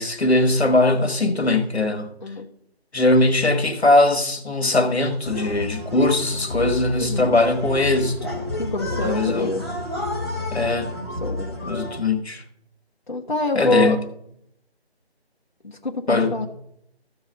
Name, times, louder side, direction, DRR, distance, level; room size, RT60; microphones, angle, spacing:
voice 1, 0.0-2.1 2.9-8.4 9.0-9.5 10.5-11.0 11.6-12.4 13.5-14.1 16.1-16.4, left 2 dB, 75° left, 1.6 m, -20 dB
sound 1, 5.2-12.0, left 1 dB, 25° left, 1.5 m, -30 dB
voice 2, 8.6-9.6 11.2-11.5 13.1-14.0 15.6-16.5, left 2 dB, 45° left, 1.2 m, -25 dB
14.0 x 4.7 x 6.8 m
figure-of-eight pair, 180°, 32 cm